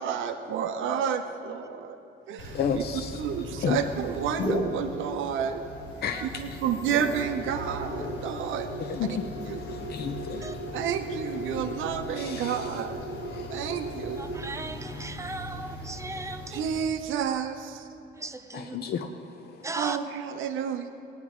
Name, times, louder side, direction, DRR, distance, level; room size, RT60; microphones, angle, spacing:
voice 1, 0.0-2.0 2.3-2.8 3.2-5.6 6.2-8.7 9.5-9.6 10.3-13.0 13.5-14.2 16.5-17.9 19.8-20.9, right 8 dB, 85° right, 7 dB, 0.7 m, -30 dB
sound 1, 2.4-16.8, equal, 80° left, 1.7 m, -36 dB
voice 2, 2.5-3.2 3.6-3.8 6.0-6.6 6.9-7.0 8.8-11.6 12.2-12.8 13.2-13.7 18.5-19.7, left 6 dB, 55° left, 6 dB, 0.6 m, -33 dB
voice 3, 14.2-16.7 18.1-18.8 19.6-20.0, right 3 dB, 15° right, 8 dB, 0.7 m, -37 dB
17.5 x 9.6 x 3.6 m, 2.8 s
cardioid pair, 90°, 20 cm